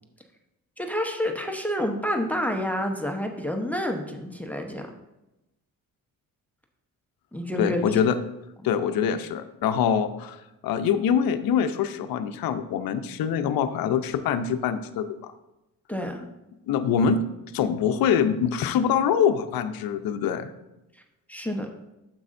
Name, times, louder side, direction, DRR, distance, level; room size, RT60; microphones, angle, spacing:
voice 1, 0.8-4.9 7.3-7.9 15.9-16.2 21.3-21.7, left 1 dB, 5° left, 3 dB, 0.9 m, -28 dB
voice 2, 7.6-8.2 8.6-15.3 16.7-17.2 17.5-20.5, left 7 dB, 80° left, 9 dB, 0.6 m, -24 dB
9.5 x 7.4 x 2.6 m, 0.94 s
cardioid pair, 85°, 35 cm